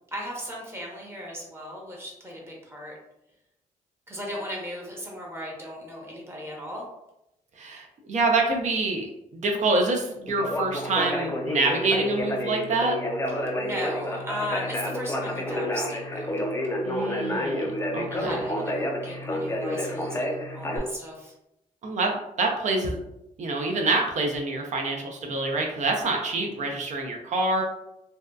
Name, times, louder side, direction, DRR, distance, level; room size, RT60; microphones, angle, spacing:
voice 1, 0.1-2.9 4.1-6.9 13.3-16.4 18.1-21.3, equal, 15° right, -2 dB, 0.7 m, -36 dB
voice 2, 7.6-13.0 16.8-18.3 21.8-23.0 23.4-27.6, right 3 dB, 55° right, 2 dB, 0.5 m, -26 dB
Conversation, 10.3-20.8, left 1 dB, 20° left, 0.4 m, -29 dB
2.6 x 2.2 x 2.2 m, 0.86 s
cardioid pair, 110°, 15 cm